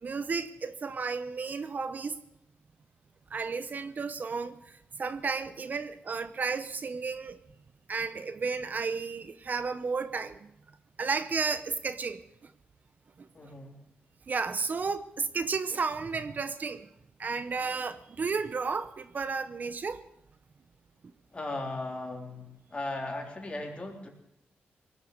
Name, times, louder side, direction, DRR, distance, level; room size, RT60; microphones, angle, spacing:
voice 1, 0.0-2.2 3.3-7.4 7.9-10.5 11.0-12.5 13.2-13.5 14.3-16.9 17.2-20.0, right 4 dB, 50° right, 13 dB, 0.8 m, -33 dB
voice 2, 13.3-13.8 21.3-24.1, left 2 dB, 30° left, 1 dB, 3.8 m, -37 dB
19.5 x 8.3 x 8.0 m, 0.83 s
cardioid pair, 80°, 4 cm